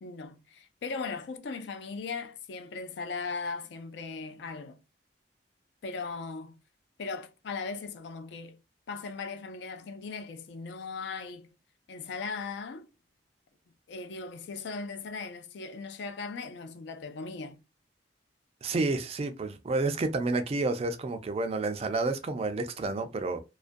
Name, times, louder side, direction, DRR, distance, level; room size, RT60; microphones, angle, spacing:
voice 1, 0.0-4.8 5.8-6.6 7.0-8.6 8.9-11.5 11.9-12.9 13.9-17.6, left 4 dB, 65° left, 0.4 m, -38 dB
voice 2, 18.6-23.4, right 3 dB, 35° right, 0.3 m, -30 dB
2.4 x 2.2 x 2.5 m
head